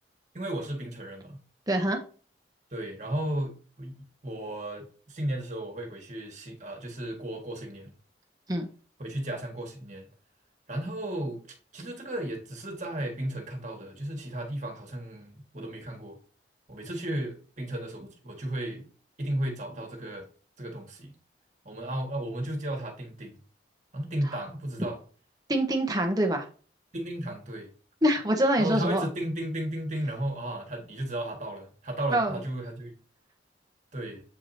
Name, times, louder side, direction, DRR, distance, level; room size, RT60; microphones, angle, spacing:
voice 1, 0.3-1.4 2.7-3.9 4.2-7.9 9.0-10.1 10.7-11.5 11.7-16.2 16.7-18.9 19.2-20.2 20.6-21.1 21.6-23.4 23.9-25.0 26.9-27.7 28.6-33.0 33.9-34.2, right 1 dB, 40° right, 1.6 m, -34 dB
voice 2, 1.7-2.0 8.5-8.7 24.2-24.4 25.5-26.4 28.0-29.1 32.1-32.4, right 1 dB, 20° right, 1.0 m, -25 dB
7.8 x 4.8 x 2.7 m
head